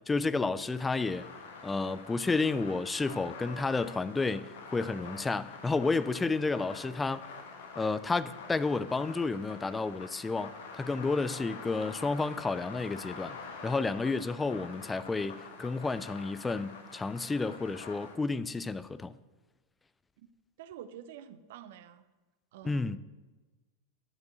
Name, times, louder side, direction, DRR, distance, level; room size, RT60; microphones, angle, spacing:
voice 1, 0.1-1.3 1.6-7.3 7.8-13.4 13.6-19.1 22.6-23.0, left 3 dB, 10° left, 0.4 m, -31 dB
sound 1, 0.6-18.2, left 4 dB, 55° left, 1.2 m, -47 dB
voice 2, 20.6-22.1 22.5-23.0, right 10 dB, 55° right, 0.6 m, -48 dB
9.1 x 5.3 x 7.7 m
figure-of-eight pair, 90°, 0 cm